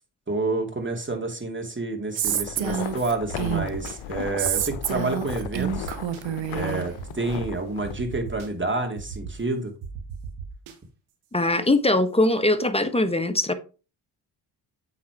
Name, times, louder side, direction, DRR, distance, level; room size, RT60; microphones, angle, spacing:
voice 1, 0.3-5.9 6.5-9.7, right 2 dB, 25° right, 2.7 m, -29 dB
sound 1, 2.2-7.9, left 12 dB, 75° left, 0.8 m, -36 dB
Female speech woman speaking, 2.2-3.9 4.4-6.9, right 11 dB, 65° right, 1.1 m, -28 dB
sound 2, 3.3-3.9 4.4-4.8 5.3-6.2 7.0-7.1 7.4-7.5 7.8-8.5 9.0-9.3 9.8-10.7, right 6 dB, 80° right, 1.7 m, -36 dB
voice 2, 11.3-13.5, left 2 dB, 10° left, 1.3 m, -21 dB
8.5 x 4.1 x 4.7 m
supercardioid pair, 50°, 49 cm